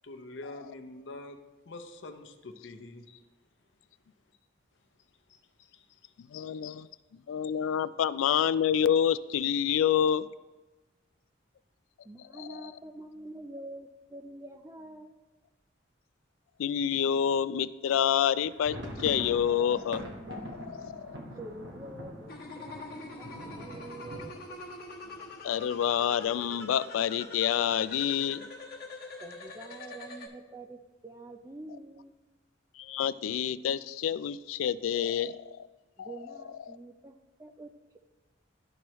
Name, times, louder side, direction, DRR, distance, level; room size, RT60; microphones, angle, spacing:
voice 1, 0.0-1.4 1.7-3.2 5.3-6.1 6.7-6.8, left 2 dB, 65° left, 6 dB, 0.7 m, -46 dB
voice 2, 6.3-6.9 7.3-10.3 12.4-12.5 16.6-21.2 25.4-28.5 32.8-35.7 36.0-36.1 36.7-36.8, left 9 dB, 90° left, 16 dB, 0.3 m, -28 dB
voice 3, 12.0-15.1 21.4-22.3 22.6-23.3 23.6-24.6 29.2-32.1 36.0-37.7, right 2 dB, 15° right, 4 dB, 0.3 m, -46 dB
sound 1, 18.3-26.0 26.3-26.5 26.7-26.9 27.5-28.0, equal, 60° right, 1.1 m, -44 dB
sound 2, 22.3-30.3, left 2 dB, 50° left, 1.1 m, -44 dB
12.0 x 4.7 x 3.0 m, 1.2 s
head